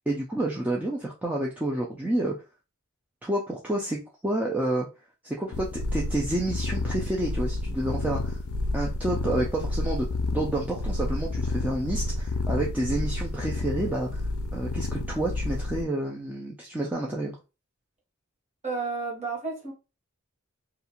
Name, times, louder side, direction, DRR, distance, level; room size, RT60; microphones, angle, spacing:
voice 1, 0.1-2.4 3.2-4.9 5.2-8.4 8.7-14.2 14.5-17.3, right 1 dB, 5° right, 0.3 m, -29 dB
sound 1, 5.5-15.8, left 2 dB, 70° left, 0.4 m, -30 dB
voice 2, 18.6-19.7, right 4 dB, 35° right, 1.2 m, -31 dB
2.5 x 2.3 x 2.9 m
head